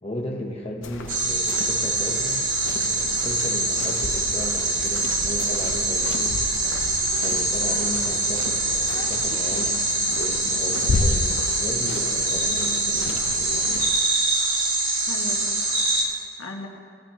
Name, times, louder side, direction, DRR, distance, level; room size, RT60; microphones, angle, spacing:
voice 1, 0.0-2.5 2.8-6.3 7.2-9.8 10.1-13.8, left 1 dB, 30° left, -1 dB, 1.0 m, -35 dB
sound 1, 0.8-14.0, left 2 dB, 70° left, 0.7 m, -33 dB
sound 2, 1.1-16.0, right 2 dB, 70° right, 2.5 m, -24 dB
voice 2, 15.0-16.7, left 2 dB, 85° left, 1 dB, 1.4 m, -39 dB
18.0 x 9.9 x 3.0 m, 2.2 s
head